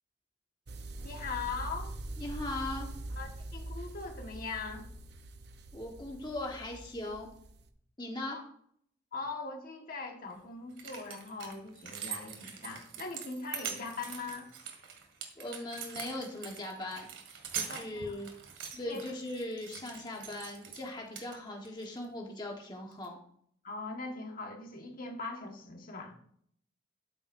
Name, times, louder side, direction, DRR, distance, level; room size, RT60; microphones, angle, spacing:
sound 1, 0.7-7.7, right 1 dB, 60° right, 0.8 m, -43 dB
voice 1, 1.0-1.9 3.2-4.9 8.3-8.4 9.1-14.5 17.7-18.2 18.7-19.0 23.6-26.1, left 4 dB, 50° left, 2 dB, 1.5 m, -41 dB
voice 2, 2.2-2.9 5.7-7.3 8.0-8.4 15.4-17.1 17.5-18.3 18.8-23.2, left 1 dB, 25° left, 0 dB, 1.3 m, -39 dB
sound 2, 10.3-10.4 10.7-20.9 21.1-21.8 22.9-23.1, right 7 dB, 80° right, 2.0 m, -43 dB
12.5 x 8.9 x 2.6 m, 0.65 s
head